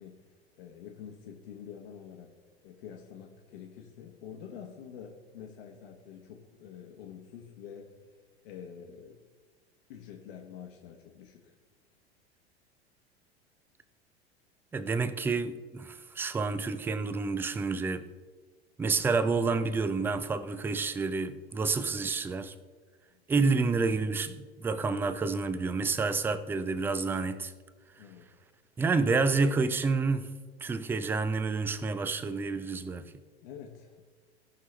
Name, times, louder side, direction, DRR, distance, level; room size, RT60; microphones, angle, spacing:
voice 1, 0.0-2.4 2.6-8.0 8.4-9.2 9.9-11.5 23.1-23.5 28.0-28.3 33.4-34.0, left 8 dB, 60° left, 1.3 m, -47 dB
voice 2, 14.7-18.0 18.8-22.5 23.3-27.5 28.8-30.3 30.6-33.1, right 4 dB, 5° right, 0.3 m, -29 dB
18.0 x 6.0 x 3.3 m
figure-of-eight pair, 80°, 33 cm